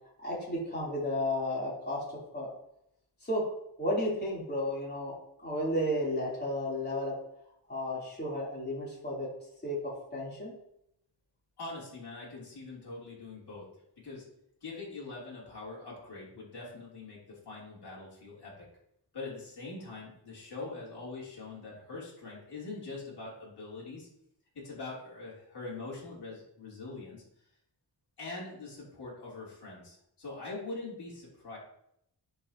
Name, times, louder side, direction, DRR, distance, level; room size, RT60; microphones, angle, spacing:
voice 1, 0.2-2.0 2.3-2.5 3.2-3.5 3.8-5.1 5.4-7.1 7.7-9.3 9.6-10.5, left 1 dB, 25° left, -6 dB, 3.2 m, -33 dB
voice 2, 11.6-13.7 14.0-14.3 14.6-18.7 19.1-24.1 24.6-27.2 28.2-31.6, left 3 dB, 65° left, -6 dB, 3.3 m, -43 dB
11.0 x 5.5 x 2.9 m, 0.76 s
wide cardioid pair, 145°, 43 cm